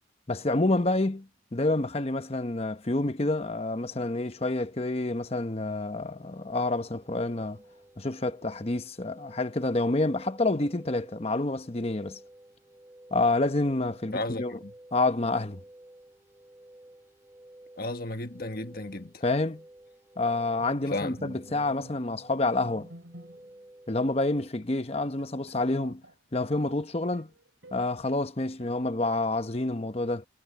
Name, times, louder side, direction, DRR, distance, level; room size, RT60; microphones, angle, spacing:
voice 1, 0.3-7.6 8.0-12.2 13.1-14.6 14.9-15.6 19.2-19.6 20.2-22.9 23.9-26.0 26.3-27.3 27.7-30.3, left 2 dB, 35° left, 0.9 m, -28 dB
sound 1, 6.2-24.5, right 1 dB, 15° right, 3.5 m, -53 dB
voice 2, 14.1-14.7 17.8-19.1 20.9-21.2, left 2 dB, 50° left, 1.5 m, -33 dB
Bowed string instrument, 20.6-23.6 24.0-24.2 24.6-24.7 24.9-26.8 27.1-27.9 28.6-29.2, right 1 dB, 85° right, 5.8 m, -50 dB
head